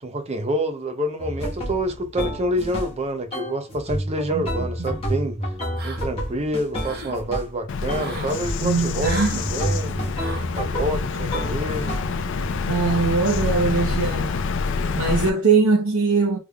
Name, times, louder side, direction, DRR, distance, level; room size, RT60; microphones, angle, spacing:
voice 1, 0.0-5.4 5.8-10.0 10.5-12.0, equal, 30° right, 0.6 m, -27 dB
sound 1, 1.2-3.0 3.3-7.6 7.9-8.6 9.0-12.2, equal, 25° left, 1.2 m, -30 dB
sound 2, 5.8-6.3 6.6-7.2 7.9-8.4 9.0-9.4 10.2-10.5, right 3 dB, 45° right, 1.0 m, -35 dB
Bird vocalization bird call bird song, 7.7-15.3, left 4 dB, 55° left, 0.4 m, -27 dB
voice 2, 8.6-9.4 12.7-14.5 14.9-16.4, right 4 dB, 70° right, 0.8 m, -21 dB
3.6 x 3.3 x 2.2 m
head